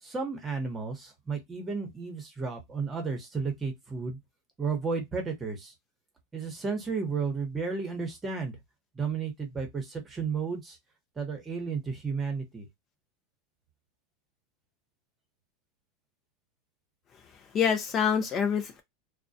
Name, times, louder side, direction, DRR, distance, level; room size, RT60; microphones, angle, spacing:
voice 1, 0.0-4.2 4.6-5.7 6.3-8.6 8.9-10.8 11.2-12.7, right 5 dB, 20° right, 0.9 m, -33 dB
voice 2, 17.2-18.8, left 7 dB, 35° left, 0.5 m, -27 dB
2.2 x 2.1 x 2.6 m
supercardioid pair, 120°, 0 cm